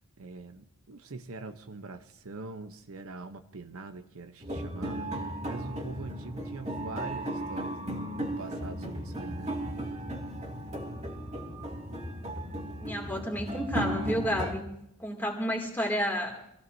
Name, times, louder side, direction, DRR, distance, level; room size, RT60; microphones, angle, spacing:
voice 1, 0.2-9.5, right 3 dB, 65° right, 8 dB, 0.9 m, -43 dB
sound 1, 4.4-14.5, right 1 dB, 30° right, 2.2 m, -35 dB
voice 2, 12.8-14.7 15.0-16.4, equal, 10° left, 1 dB, 2.5 m, -31 dB
25.0 x 15.5 x 2.7 m, 0.77 s
head